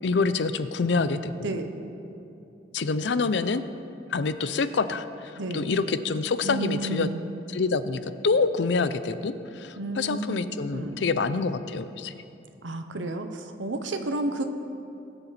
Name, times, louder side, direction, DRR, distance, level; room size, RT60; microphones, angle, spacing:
voice 1, 0.0-1.5 2.7-3.6 4.1-7.1 7.5-12.2, left 4 dB, 65° left, 12 dB, 0.5 m, -26 dB
voice 2, 5.4-5.7 6.4-7.2 9.8-10.4 10.7-11.0 12.6-14.4, right 2 dB, 85° right, 7 dB, 0.9 m, -31 dB
20.5 x 6.9 x 4.2 m, 2.8 s
head